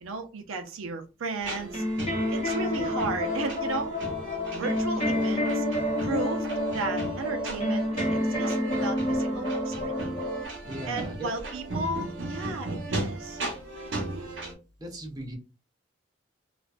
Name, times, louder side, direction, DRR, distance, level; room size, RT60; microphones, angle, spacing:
voice 1, 0.0-1.8 2.3-3.9 4.5-10.1 10.9-13.4 14.0-14.3, right 3 dB, 90° right, 0.5 m, -35 dB
sound 1, 1.4-14.5, right 2 dB, 65° right, 0.9 m, -37 dB
sound 2, 1.7-10.4, left 1 dB, 30° left, 0.6 m, -29 dB
voice 2, 10.6-11.3 14.3-14.4 14.8-15.4, right 1 dB, 20° right, 0.6 m, -38 dB
2.4 x 2.2 x 2.4 m
head